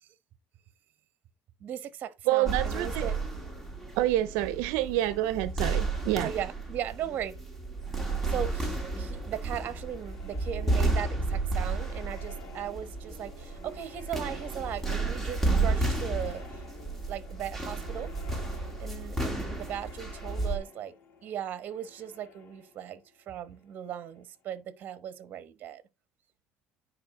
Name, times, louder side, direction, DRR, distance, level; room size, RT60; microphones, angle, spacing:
voice 1, 1.6-3.2 6.2-7.4 8.2-18.1 18.8-20.9 21.2-25.8, right 10 dB, 45° right, 1.1 m, -38 dB
voice 2, 2.3-3.1 4.0-6.3, right 15 dB, 85° right, 0.6 m, -27 dB
sound 1, 2.5-20.6, right 3 dB, 5° left, 1.9 m, -32 dB
sound 2, 7.7-24.4, left 5 dB, 50° left, 1.5 m, -52 dB
9.5 x 4.7 x 3.7 m
cardioid pair, 130°, 4 cm